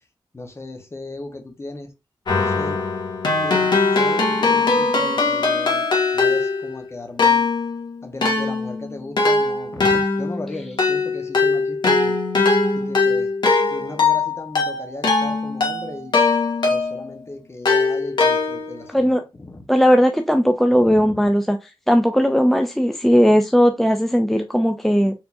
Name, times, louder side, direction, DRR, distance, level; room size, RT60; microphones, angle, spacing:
voice 1, 0.3-1.9 2.4-2.8 3.4-5.9 6.1-7.4 8.0-12.2 12.7-13.3 13.7-16.2 16.7-19.1 19.4-19.7 20.8-21.3, left 2 dB, 30° left, 1.1 m, -36 dB
Keyboard (musical), 2.3-6.8 7.2-17.1 17.6-18.8, left 3 dB, 60° left, 1.8 m, -20 dB
voice 2, 18.9-19.2 19.7-21.6 21.9-25.1, equal, 5° left, 0.4 m, -17 dB
4.5 x 3.8 x 2.6 m
wide cardioid pair, 85°, 9 cm